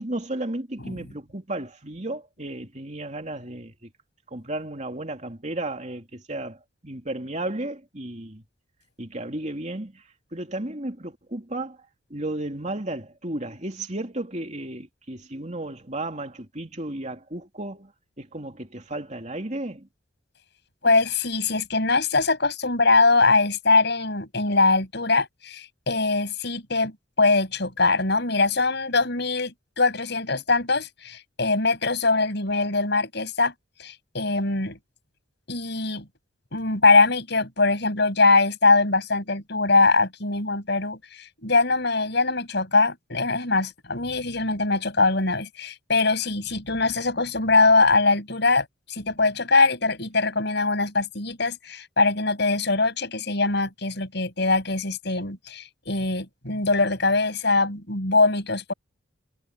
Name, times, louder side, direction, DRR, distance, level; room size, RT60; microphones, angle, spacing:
voice 1, 0.0-3.7 4.3-8.4 9.0-10.0 10.3-11.8 12.1-17.9 18.2-19.9, right 1 dB, 35° right, 3.2 m, -33 dB
voice 2, 20.8-33.5 33.8-34.8 35.5-36.0 36.5-58.7, left 3 dB, 55° left, 7.6 m, -22 dB
head